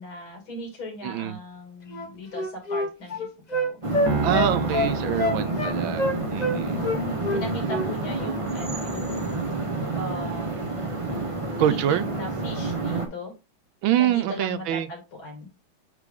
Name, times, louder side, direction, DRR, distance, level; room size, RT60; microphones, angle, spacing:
voice 1, 0.0-3.8 5.0-5.5 6.5-6.9 7.3-9.3 9.9-10.8 11.6-13.3 13.9-15.5, left 1 dB, 75° left, 3.4 m, -38 dB
voice 2, 1.0-1.4 4.2-6.8 11.6-12.0 13.8-14.9, right 11 dB, 80° right, 1.4 m, -25 dB
Wind instrument woodwind instrument, 1.9-6.6 6.8-8.3, left 1 dB, 40° left, 0.5 m, -26 dB
sound 1, 3.8-13.1, right 2 dB, 25° right, 0.7 m, -29 dB
Piano, 4.1-6.5, right 3 dB, 60° right, 2.0 m, -31 dB
8.2 x 3.4 x 3.7 m
omnidirectional pair, 2.2 m